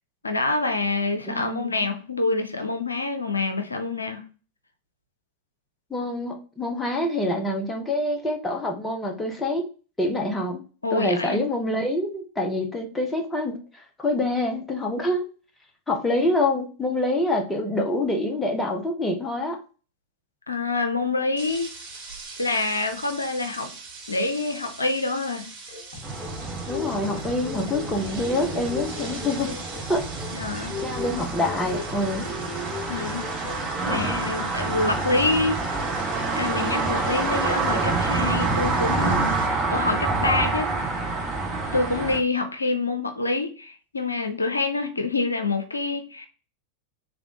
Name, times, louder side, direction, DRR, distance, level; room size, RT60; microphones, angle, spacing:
voice 1, 0.2-4.2 10.8-11.5 20.5-21.7 22.4-23.7 24.1-25.4 30.3-30.8 32.9-33.2 33.9-35.6 36.3-39.2 39.7-40.7 41.7-46.3, left 3 dB, 80° left, 7 dB, 0.6 m, -26 dB
voice 2, 1.3-1.9 5.9-9.6 10.0-10.6 10.9-15.3 15.9-19.6 26.7-29.5 29.9-30.0 30.5-32.3 33.8-34.1, left 1 dB, 10° left, 2 dB, 0.9 m, -26 dB
sound 1, 21.4-39.5, right 4 dB, 45° right, 2.5 m, -42 dB
sound 2, 25.7-34.2, left 5 dB, 55° left, 1.6 m, -38 dB
sound 3, 26.0-42.2, right 3 dB, 15° right, 1.7 m, -27 dB
3.5 x 3.5 x 3.7 m, 0.36 s
figure-of-eight pair, 90°, 0 cm